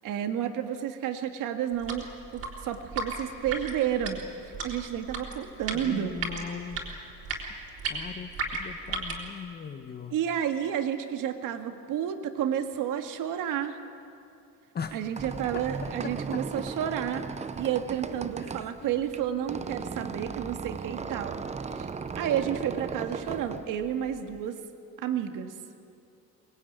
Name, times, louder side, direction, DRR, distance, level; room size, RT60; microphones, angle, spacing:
voice 1, 0.0-6.2 10.1-13.8 14.9-17.2 17.5-21.4 21.7-21.9 22.2-24.6 25.0-25.5, right 9 dB, 65° right, 7 dB, 1.9 m, -31 dB
sound 1, 1.7-9.3, right 3 dB, 40° right, 3.8 m, -36 dB
voice 2, 5.7-7.0 7.9-10.2 14.7-15.0 15.5-15.7 16.0-16.4 18.4-18.7, left 6 dB, 30° left, 8 dB, 1.1 m, -39 dB
Squeak, 14.8-24.5, right 5 dB, 20° right, 0.7 m, -37 dB
24.0 x 20.5 x 9.4 m, 2.6 s
cardioid pair, 175°, 35 cm